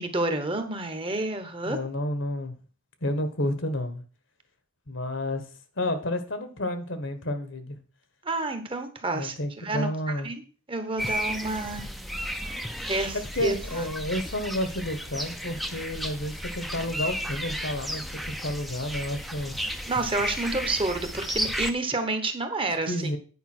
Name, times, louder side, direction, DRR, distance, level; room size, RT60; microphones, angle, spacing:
voice 1, 0.0-1.8 8.2-9.9 10.2-10.4 10.7-11.8 12.8-13.8 19.9-22.9, right 2 dB, 25° right, 7 dB, 1.1 m, -29 dB
voice 2, 1.6-2.5 3.0-4.0 4.9-5.4 5.8-7.8 9.1-10.3 13.1-19.6 22.9-23.2, left 1 dB, 65° left, 9 dB, 1.4 m, -30 dB
sound 1, 11.0-21.7, equal, ahead, 0.6 m, -33 dB
9.4 x 5.3 x 6.1 m, 0.38 s
head